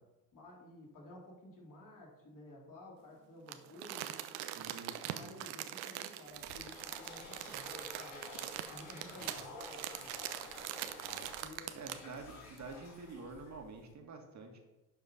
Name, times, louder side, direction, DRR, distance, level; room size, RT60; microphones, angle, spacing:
voice 1, 0.3-4.3 5.0-8.4 8.7-10.5 11.4-11.8, left 1 dB, 40° left, -2 dB, 3.1 m, -53 dB
Crumpling crinkling, 3.5-12.1 12.6-12.7, right 13 dB, 65° right, 0.8 m, -43 dB
voice 2, 4.6-5.3 9.2-9.4 10.8-11.3 11.7-14.6, right 3 dB, 35° right, 3 dB, 1.8 m, -49 dB
sound 1, 6.3-13.9, left 2 dB, 70° left, 1.9 m, -51 dB
11.0 x 4.9 x 4.0 m, 1.1 s
hypercardioid pair, 65°, 48 cm